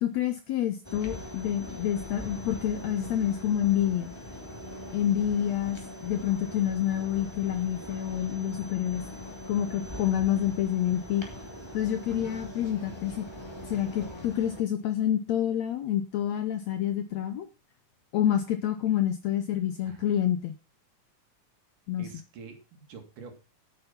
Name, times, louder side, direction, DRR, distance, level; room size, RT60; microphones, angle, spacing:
voice 1, 0.0-4.1 4.9-9.0 9.5-11.3 11.7-13.2 13.7-17.5 18.1-20.5 21.9-22.1, left 11 dB, 75° left, 10 dB, 1.7 m, -28 dB
sound 1, 0.8-14.6, left 1 dB, 10° left, 2.2 m, -42 dB
voice 2, 22.0-23.3, right 5 dB, 70° right, 5 dB, 3.6 m, -46 dB
9.5 x 9.1 x 5.8 m, 0.32 s
omnidirectional pair, 3.9 m